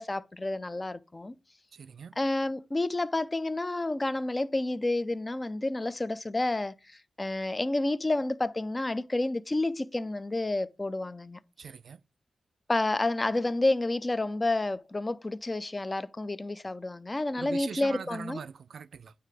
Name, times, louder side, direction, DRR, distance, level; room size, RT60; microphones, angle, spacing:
voice 1, 0.0-1.3 2.2-11.4 12.7-18.4, left 2 dB, 20° left, 0.4 m, -30 dB
voice 2, 1.7-2.1 11.6-12.0 17.4-19.1, right 6 dB, 70° right, 0.3 m, -41 dB
9.3 x 3.2 x 3.4 m
wide cardioid pair, 115°, 0 cm